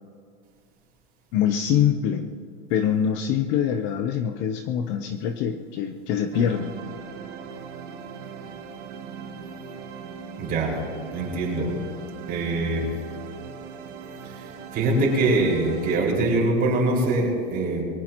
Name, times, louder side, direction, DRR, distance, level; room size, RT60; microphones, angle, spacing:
voice 1, 1.3-2.3 2.7-6.8, left 8 dB, 30° left, 8 dB, 0.7 m, -24 dB
sound 1, 6.3-16.0, right 6 dB, 80° right, 3.0 m, -39 dB
voice 2, 10.4-10.7 11.1-11.8 12.3-12.9 14.7-17.8, right 2 dB, 25° right, -3 dB, 5.1 m, -23 dB
22.5 x 18.5 x 3.0 m, 2.2 s
supercardioid pair, 150°, 36 cm